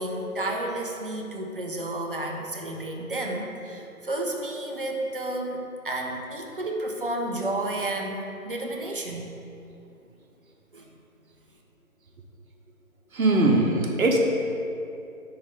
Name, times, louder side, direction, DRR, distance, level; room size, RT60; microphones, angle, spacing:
voice 1, 0.0-9.3 10.7-10.9, right 1 dB, 40° right, 0 dB, 0.5 m, -31 dB
voice 2, 13.1-14.2, right 2 dB, 70° right, 1 dB, 1.1 m, -21 dB
5.7 x 3.2 x 5.2 m, 2.7 s
figure-of-eight pair, 165°, 44 cm